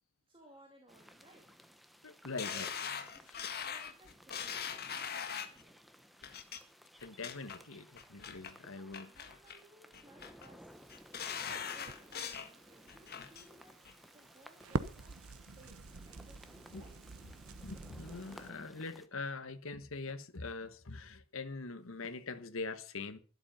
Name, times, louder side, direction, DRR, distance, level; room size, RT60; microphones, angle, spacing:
voice 1, 0.3-1.5 2.3-4.5 4.9-5.7 8.7-10.7 11.4-13.8 14.1-15.2 15.5-15.8 16.1-17.0, right 1 dB, 25° right, 2.5 m, -61 dB
sound 1, 0.9-19.1, equal, ahead, 1.0 m, -58 dB
voice 2, 2.0-2.7 7.0-9.1 16.7-16.8 17.6-23.2, left 3 dB, 65° left, 1.2 m, -43 dB
sound 2, 2.4-5.6 6.2-6.6 7.0-7.6 8.0-8.5 8.9-9.6 9.9-10.5 10.9-12.5 12.9-13.5 13.9-14.0, left 7 dB, 45° left, 1.6 m, -41 dB
Crackle, 10.7-18.5, right 3 dB, 80° right, 0.9 m, -45 dB
12.0 x 11.5 x 5.6 m
head